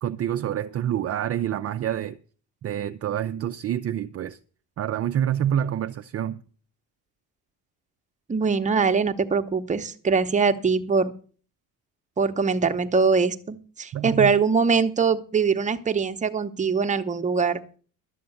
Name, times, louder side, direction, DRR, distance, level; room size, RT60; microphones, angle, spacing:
voice 1, 0.0-2.2 2.6-4.4 4.8-6.4 13.9-14.3, right 10 dB, 35° right, 0.5 m, -27 dB
voice 2, 8.3-11.1 12.2-17.6, right 5 dB, 20° right, 0.8 m, -22 dB
11.5 x 7.6 x 6.9 m
cardioid pair, 135°, 40 cm